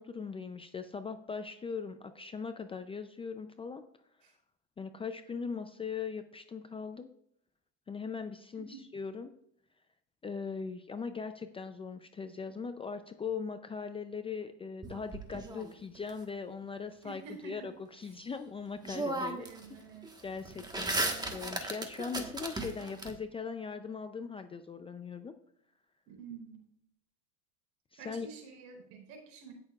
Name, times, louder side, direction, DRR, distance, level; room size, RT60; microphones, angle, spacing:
voice 1, 0.0-3.8 4.8-7.1 7.9-9.3 10.2-19.8 20.2-25.3 27.9-28.3, left 5 dB, 15° left, 8 dB, 0.5 m, -40 dB
sound 1, 14.8-16.1 18.3-18.4 18.8-19.6 19.9-23.1, right 2 dB, 10° right, 1.4 m, -36 dB
voice 2, 17.0-17.7 18.0-18.1 19.4-20.1 20.5-21.3 26.1-26.6 28.0-29.5, right 6 dB, 70° right, 3 dB, 3.8 m, -49 dB
17.5 x 6.5 x 2.4 m, 0.72 s
supercardioid pair, 115°, 35 cm